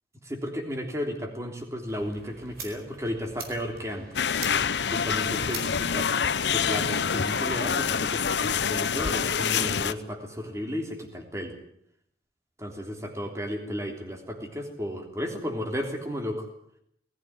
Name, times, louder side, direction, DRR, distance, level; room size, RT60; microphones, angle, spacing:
voice 1, 0.2-4.2 4.9-6.1 6.5-11.5 12.6-16.5, equal, 15° right, 3 dB, 3.4 m, -34 dB
sound 1, 1.9-9.3, right 4 dB, 60° right, 4.5 m, -45 dB
sound 2, 4.1-9.9, left 6 dB, 80° left, 0.8 m, -26 dB
20.0 x 14.5 x 9.8 m, 0.71 s
head